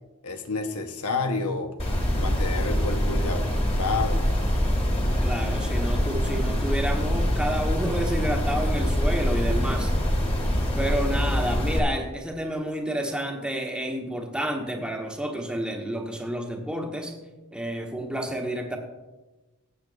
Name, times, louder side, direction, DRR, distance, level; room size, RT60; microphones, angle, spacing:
voice 1, 0.2-1.7 2.1-4.3, left 3 dB, 85° left, 6 dB, 1.1 m, -30 dB
sound 1, 1.8-11.8, equal, 30° left, 1.7 m, -24 dB
voice 2, 5.2-9.9 10.7-17.2 17.5-18.8, equal, 5° right, 2 dB, 1.2 m, -30 dB
18.0 x 8.2 x 2.5 m, 1.1 s
head